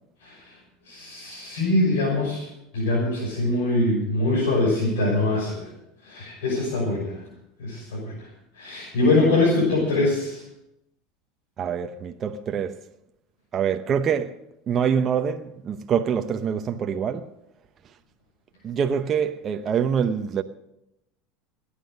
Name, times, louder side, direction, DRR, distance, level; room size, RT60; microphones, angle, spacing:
voice 1, 0.9-2.5 2.7-5.7 6.0-7.2 7.6-8.2 8.5-10.4, left 2 dB, 85° left, 6.3 m, -23 dB
voice 2, 11.6-12.8 13.5-14.3 14.7-17.3 18.6-20.4, right 7 dB, 35° right, 0.9 m, -25 dB
18.5 x 10.0 x 6.7 m
supercardioid pair, 105°, 0 cm